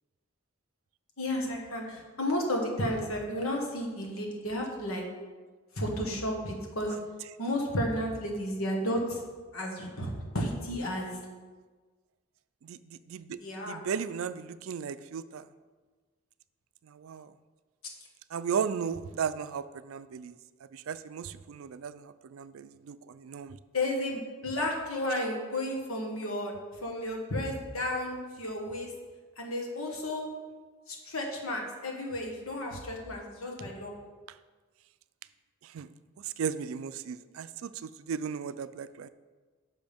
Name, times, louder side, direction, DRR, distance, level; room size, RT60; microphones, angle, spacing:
voice 1, 1.2-5.0 5.7-7.0 7.4-9.2 9.5-11.2 13.4-13.8 23.7-26.5 26.8-28.9 29.4-30.3 30.9-33.9, left 1 dB, 90° left, 1 dB, 1.6 m, -32 dB
voice 2, 12.6-13.4 13.6-15.5 16.8-17.3 18.3-20.4 20.7-23.6 35.6-35.9 36.2-39.1, right 7 dB, 75° right, 14 dB, 0.4 m, -36 dB
10.5 x 6.1 x 3.5 m, 1.4 s
head